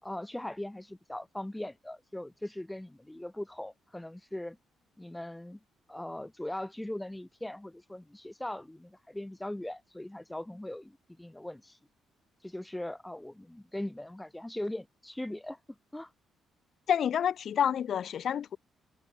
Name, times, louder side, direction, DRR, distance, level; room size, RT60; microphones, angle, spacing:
voice 1, 0.0-4.6 5.0-5.6 5.9-11.8 12.4-15.6 15.9-16.1, left 1 dB, 10° left, 3.2 m, -40 dB
voice 2, 16.9-18.6, left 9 dB, 60° left, 1.4 m, -28 dB
cardioid pair, 90°, 0 cm